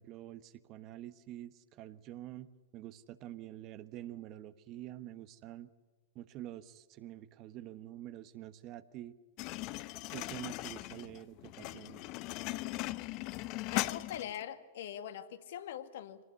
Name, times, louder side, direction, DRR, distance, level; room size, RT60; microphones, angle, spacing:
voice 1, 0.0-5.7 6.1-9.1 10.1-12.0, right 13 dB, 40° right, 1.2 m, -47 dB
sound 1, 9.4-14.4, left 19 dB, 40° left, 0.8 m, -39 dB
voice 2, 13.7-16.2, left 10 dB, 60° left, 1.8 m, -42 dB
26.0 x 19.0 x 9.7 m
figure-of-eight pair, 100°, 0 cm